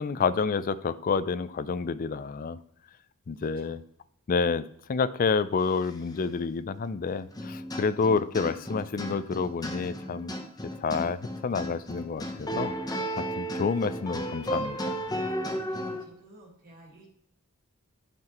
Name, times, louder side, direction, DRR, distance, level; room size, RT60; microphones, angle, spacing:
voice 1, 0.0-2.6 3.3-3.8 4.3-10.3 10.6-12.7 13.2-15.0, left 5 dB, 40° left, 15 dB, 0.3 m, -29 dB
voice 2, 3.4-3.8 15.3-17.1, right 1 dB, 40° right, -4 dB, 1.8 m, -52 dB
sound 1, 7.3-16.0, equal, 15° left, 0.8 m, -34 dB
10.5 x 5.7 x 3.0 m, 0.72 s
head